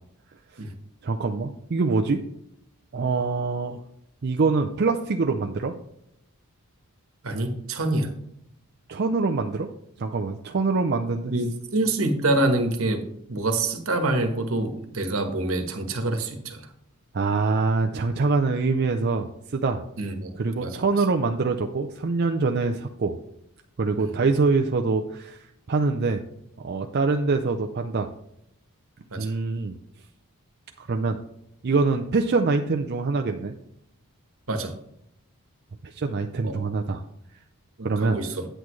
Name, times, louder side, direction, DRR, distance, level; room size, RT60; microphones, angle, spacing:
voice 1, 1.0-2.2 2.9-3.8 4.2-5.7 8.9-9.7 10.0-11.3 17.1-19.8 20.4-23.2 23.8-26.2 26.6-28.1 29.2-29.7 30.8-31.2 31.6-33.5 35.8-37.0 37.8-38.2, right 3 dB, 45° right, 5 dB, 0.5 m, -24 dB
voice 2, 7.2-8.1 11.3-16.7 20.0-20.3 20.6-20.8 24.0-24.1 29.1-29.3 34.5-34.7 36.4-36.7 37.8-38.5, right 2 dB, 65° right, 5 dB, 1.3 m, -26 dB
8.8 x 8.2 x 3.1 m, 0.78 s
head